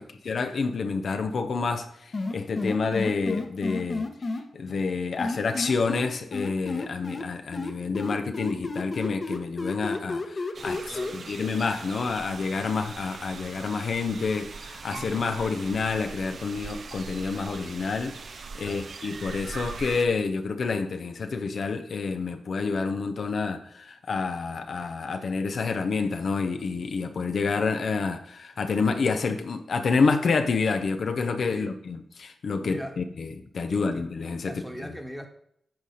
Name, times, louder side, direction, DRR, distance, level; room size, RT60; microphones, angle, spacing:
voice 1, 0.0-4.1 4.5-34.9, left 4 dB, 70° left, 0.8 m, -28 dB
sound 1, 2.1-4.4 5.2-7.2 7.5-11.1, left 3 dB, 55° left, 1.2 m, -31 dB
sound 2, 10.5-20.1, right 4 dB, 65° right, 0.5 m, -41 dB
voice 2, 10.9-11.2 14.9-15.3 18.5-18.9 31.5-31.7 32.6-33.0 33.7-34.1 34.4-35.3, equal, 10° right, 1.4 m, -40 dB
9.4 x 4.2 x 5.0 m
cardioid pair, 50°, 0 cm